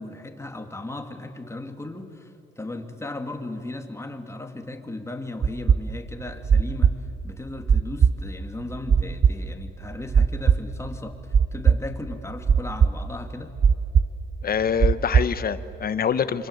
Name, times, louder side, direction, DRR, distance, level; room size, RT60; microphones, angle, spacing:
voice 1, 0.0-6.9 7.2-13.5, left 2 dB, 15° left, 5 dB, 2.5 m, -36 dB
sound 1, 5.4-15.8, right 6 dB, 35° right, 0.6 m, -20 dB
voice 2, 14.4-16.5, left 7 dB, 50° left, 13 dB, 1.2 m, -25 dB
27.0 x 25.0 x 8.1 m, 2.6 s
cardioid pair, 90°, 20 cm